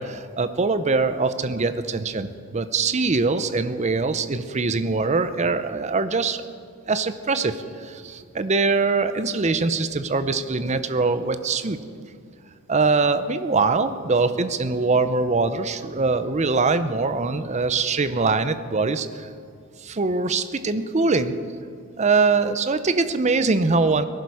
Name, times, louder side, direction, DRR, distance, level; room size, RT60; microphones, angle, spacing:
voice 1, 0.0-6.4 6.9-11.8 12.7-19.3 19.8-21.3 22.0-24.1, right 4 dB, 35° right, 11 dB, 0.6 m, -23 dB
18.5 x 11.5 x 4.8 m, 2.3 s
head